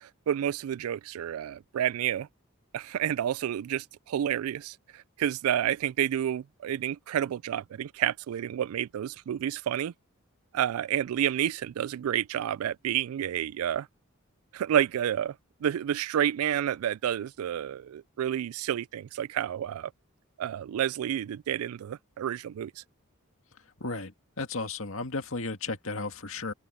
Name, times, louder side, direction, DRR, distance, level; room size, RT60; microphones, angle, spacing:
voice 1, 0.0-2.3 2.7-9.9 10.5-13.9 14.5-15.3 15.6-19.9 20.4-22.8, right 10 dB, 90° right, 0.3 m, -30 dB
voice 2, 23.8-26.5, left 3 dB, 70° left, 2.0 m, -34 dB
open air
head